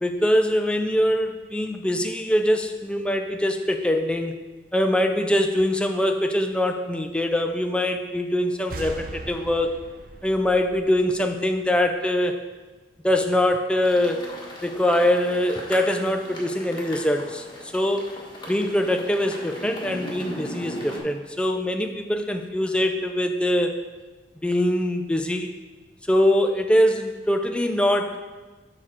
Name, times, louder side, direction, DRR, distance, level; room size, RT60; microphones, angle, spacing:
voice 1, 0.0-4.4 4.7-9.8 10.2-12.4 13.0-14.2 14.6-17.4 17.7-18.1 18.5-23.7 24.4-25.5 26.1-28.2, left 1 dB, 5° left, 4 dB, 0.5 m, -23 dB
sound 1, 8.7-12.2, right 2 dB, 55° right, 0.7 m, -40 dB
sound 2, 13.8-21.0, left 1 dB, 25° left, 1.4 m, -38 dB
7.0 x 4.3 x 6.0 m, 1.3 s
head